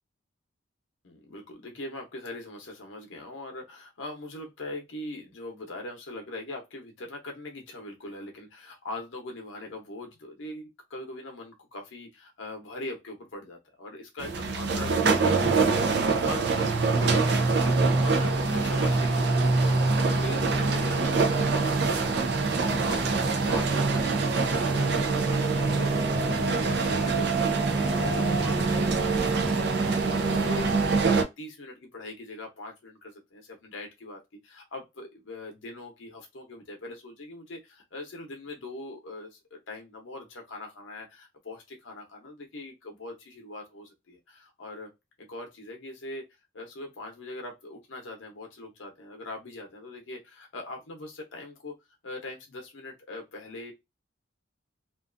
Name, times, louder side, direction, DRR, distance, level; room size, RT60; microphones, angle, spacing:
voice 1, 1.0-44.9 45.2-46.2 46.5-51.7 52.0-53.7, left 2 dB, 75° left, 0.7 m, -42 dB
sound 1, 14.2-31.2, right 3 dB, 55° right, 0.4 m, -24 dB
2.5 x 2.3 x 2.4 m
head